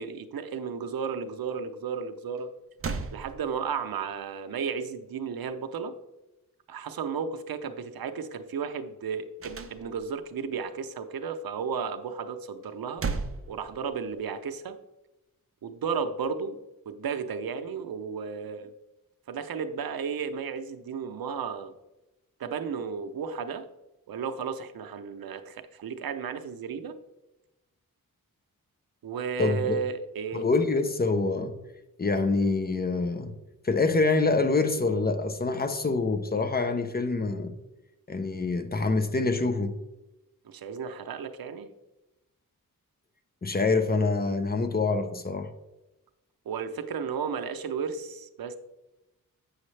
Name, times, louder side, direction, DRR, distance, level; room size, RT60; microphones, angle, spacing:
voice 1, 0.0-2.5 3.1-5.9 6.7-13.1 13.5-14.8 15.6-16.6 16.9-18.7 19.3-21.7 22.4-23.7 24.1-27.0 29.0-30.5 40.4-41.7 46.5-48.6, right 6 dB, 80° right, 0.6 m, -33 dB
sound 1, 2.4-2.5 2.8-3.9 9.4-10.3 12.6-14.2, right 4 dB, 40° right, 0.6 m, -35 dB
voice 2, 29.4-29.8 30.3-31.5 32.0-33.3 33.6-37.5 38.1-39.8 43.4-45.5, left 3 dB, 25° left, 0.7 m, -26 dB
8.3 x 6.4 x 3.2 m
wide cardioid pair, 120°, 35 cm